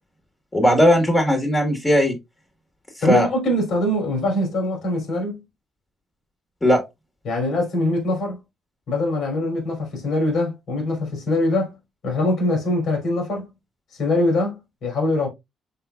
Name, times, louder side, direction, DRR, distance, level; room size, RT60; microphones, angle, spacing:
voice 1, 0.5-2.1 3.0-3.3 6.6-6.8, equal, 20° left, 1.6 m, -17 dB
voice 2, 3.0-5.4 7.2-8.4 8.9-11.8 12.0-13.5 13.9-15.3, left 1 dB, 75° left, 3.2 m, -23 dB
5.6 x 3.6 x 2.3 m
cardioid pair, 90°, 0 cm